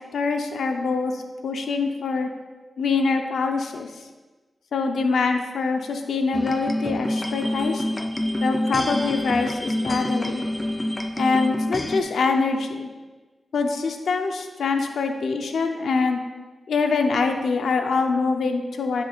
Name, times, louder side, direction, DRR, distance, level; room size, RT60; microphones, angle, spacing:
voice 1, 0.0-2.3 2.8-3.9 4.7-7.8 8.4-10.5 11.1-12.9 13.5-16.2 16.7-19.0, left 4 dB, 85° left, 5 dB, 0.7 m, -24 dB
sound 1, 6.3-12.0, left 1 dB, 20° left, 0.6 m, -27 dB
10.0 x 6.3 x 2.5 m, 1.3 s
cardioid pair, 55°, 0 cm